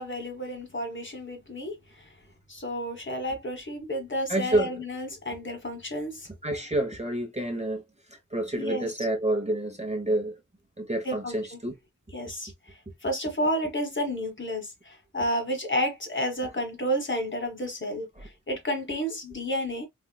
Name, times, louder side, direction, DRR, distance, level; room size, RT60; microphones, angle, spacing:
voice 1, 0.0-2.1 2.5-6.3 8.6-8.9 11.0-11.6 12.1-12.5 13.0-19.9, equal, 35° left, 1.3 m, -31 dB
voice 2, 4.3-4.7 6.4-7.8 8.3-10.3 10.8-11.7, right 1 dB, 20° right, 0.9 m, -28 dB
4.3 x 2.4 x 2.2 m
wide cardioid pair, 80°, 32 cm